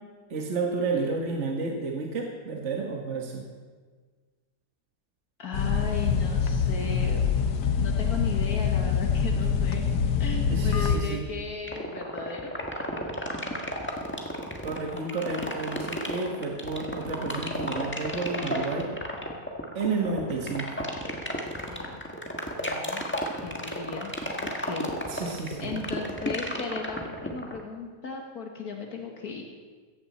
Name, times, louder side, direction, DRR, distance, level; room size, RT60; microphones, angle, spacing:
voice 1, 0.3-3.4 10.5-11.3 14.6-18.9 19.8-20.9 25.1-25.8, right 4 dB, 45° right, 1 dB, 1.6 m, -31 dB
voice 2, 5.4-7.3 7.8-9.9 10.2-12.5 21.5-22.0 22.5-23.0 23.4-24.1 24.6-25.3 25.6-29.4, left 5 dB, 65° left, 2 dB, 1.8 m, -36 dB
sound 1, 5.5-11.0, left 6 dB, 90° left, 1.5 m, -25 dB
sound 2, 11.6-27.6, equal, 5° left, 1.4 m, -32 dB
16.5 x 15.0 x 4.2 m, 1.5 s
omnidirectional pair, 1.7 m